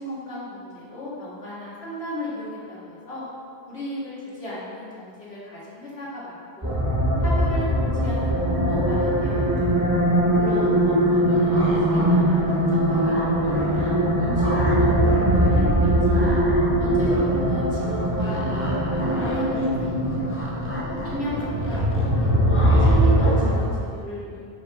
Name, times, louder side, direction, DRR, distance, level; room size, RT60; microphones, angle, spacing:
voice 1, 0.0-3.2 3.7-6.8 7.2-9.9 10.3-16.4 16.8-20.4 21.0-24.4, left 1 dB, 85° left, -8 dB, 2.0 m, -35 dB
sound 1, 6.6-23.6, right 1 dB, 20° right, 0.7 m, -21 dB
sound 2, 11.3-12.1 12.5-14.1 14.4-15.5 15.8-23.7, equal, 15° left, 0.7 m, -33 dB
5.5 x 4.8 x 4.1 m, 2.3 s
omnidirectional pair, 1.1 m